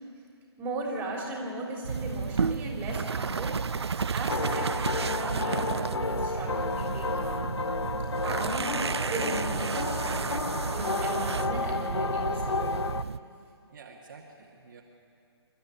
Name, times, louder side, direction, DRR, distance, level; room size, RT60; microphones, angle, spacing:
voice 1, 0.6-7.6 8.2-10.2 10.7-12.8, right 1 dB, 10° right, -1 dB, 3.5 m, -37 dB
sound 1, 1.8-13.2, right 5 dB, 65° right, 0.6 m, -32 dB
sound 2, 4.3-13.0, left 4 dB, 70° left, 0.7 m, -32 dB
voice 2, 13.7-14.8, right 5 dB, 45° right, -2 dB, 2.1 m, -50 dB
26.5 x 13.0 x 8.6 m, 2.4 s
figure-of-eight pair, 140°, 15 cm